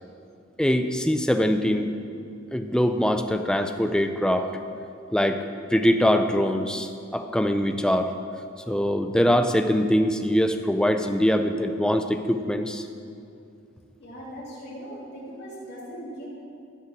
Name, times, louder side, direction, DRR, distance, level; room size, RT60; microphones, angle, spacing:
voice 1, 0.6-1.9 2.5-4.5 5.1-5.4 5.7-8.1 8.7-12.9, equal, 5° left, 7 dB, 0.4 m, -23 dB
voice 2, 14.0-16.3, equal, 55° left, -6 dB, 3.2 m, -39 dB
15.5 x 5.6 x 6.1 m, 2.5 s
head